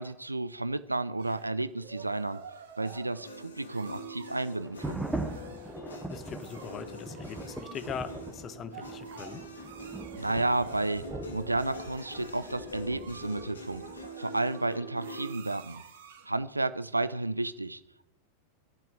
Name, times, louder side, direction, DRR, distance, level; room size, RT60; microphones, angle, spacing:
voice 1, 0.0-2.4 2.8-5.1 10.2-11.0 11.3-15.8 16.3-17.8, right 2 dB, 85° right, 15 dB, 0.5 m, -32 dB
sound 1, 1.2-16.4, right 6 dB, 60° right, 1.7 m, -49 dB
sound 2, 2.8-15.3, left 1 dB, 70° left, 2.3 m, -45 dB
sound 3, 4.6-14.1, right 2 dB, 5° right, 1.3 m, -41 dB
voice 2, 6.1-9.4, left 7 dB, 30° left, 12 dB, 1.1 m, -41 dB
11.5 x 7.5 x 9.0 m, 0.82 s
figure-of-eight pair, 90°, 0 cm